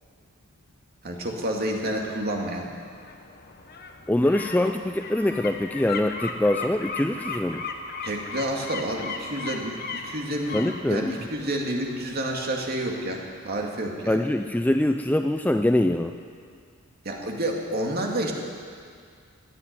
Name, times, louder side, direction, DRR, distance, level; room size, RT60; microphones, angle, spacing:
voice 1, 1.0-2.7 8.0-14.2 17.0-18.3, right 1 dB, 45° right, 0 dB, 2.2 m, -29 dB
sound 1, 1.4-14.2 14.6-14.7, left 4 dB, 45° left, 1.2 m, -38 dB
voice 2, 4.1-7.6 10.5-11.2 14.1-16.1, left 1 dB, 5° left, 6 dB, 0.4 m, -24 dB
15.5 x 9.8 x 9.4 m, 2.1 s
head